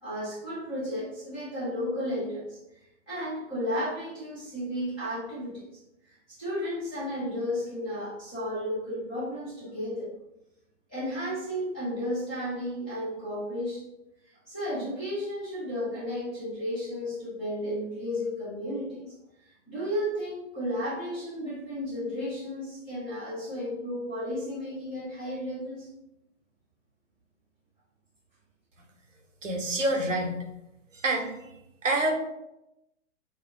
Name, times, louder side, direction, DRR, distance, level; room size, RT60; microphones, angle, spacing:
voice 1, 0.0-2.6 3.1-5.7 6.1-10.1 10.9-13.8 14.3-19.0 19.7-25.9, equal, 10° left, -13 dB, 0.3 m, -33 dB
voice 2, 29.4-30.3 31.0-31.3 31.8-32.1, right 2 dB, 85° right, 2 dB, 0.7 m, -26 dB
2.1 x 2.0 x 3.5 m, 0.88 s
figure-of-eight pair, 120°, 37 cm